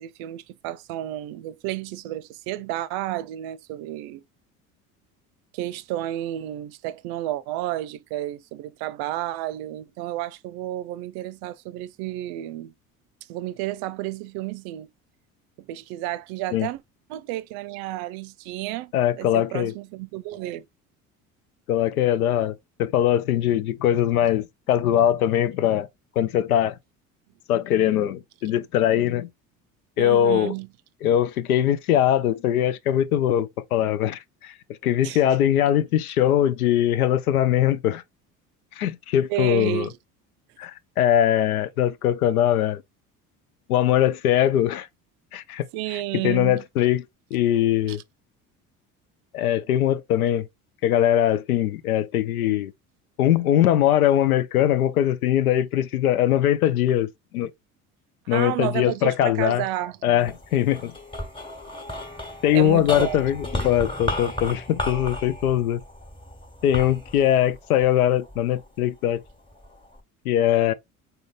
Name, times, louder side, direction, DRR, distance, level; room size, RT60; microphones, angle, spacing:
voice 1, 0.0-4.2 5.5-12.7 13.3-14.9 15.6-16.8 17.1-20.7 30.0-30.7 35.0-35.2 39.3-40.0 45.7-46.6 47.9-48.0 58.3-60.0 62.5-63.2 63.6-63.7, right 15 dB, 60° right, 0.6 m, -31 dB
voice 2, 18.9-19.7 21.7-25.9 26.2-26.8 27.5-29.3 30.0-30.5 31.0-34.5 34.8-38.0 38.8-39.9 40.6-42.8 43.7-44.9 45.3-45.7 46.2-47.1 47.3-48.0 49.3-50.5 50.8-52.7 53.2-57.5 58.3-59.6 60.0-60.9 62.4-65.8 66.6-69.2 70.2-70.7, left 11 dB, 85° left, 0.6 m, -21 dB
sound 1, 60.2-68.7 69.3-70.0, left 1 dB, 10° left, 1.3 m, -34 dB
3.9 x 3.9 x 2.5 m
hypercardioid pair, 65°, 43 cm